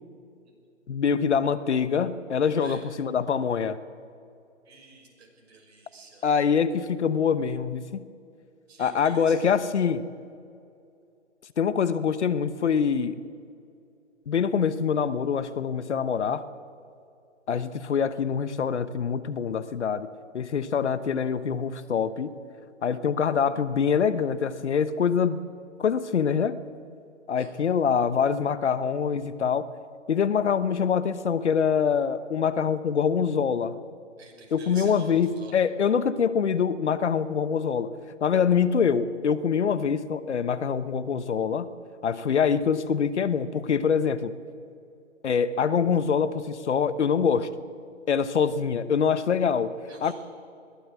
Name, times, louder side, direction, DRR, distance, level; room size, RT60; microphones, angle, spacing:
voice 1, 0.9-3.8 6.2-8.0 8.8-10.0 11.6-13.2 14.3-16.4 17.5-22.3 22.8-25.4 25.8-26.6 27.3-29.6 30.1-33.8 34.5-37.9 38.2-41.7 42.0-44.4 45.2-47.5 48.1-50.1, left 6 dB, 60° left, 15 dB, 1.1 m, -25 dB
voice 2, 4.6-6.2 8.7-9.5 27.3-27.5 29.2-29.3 34.2-35.6 49.9-50.1, right 3 dB, 55° right, 1 dB, 5.9 m, -48 dB
21.0 x 15.5 x 8.3 m, 2.5 s
hypercardioid pair, 150°, 38 cm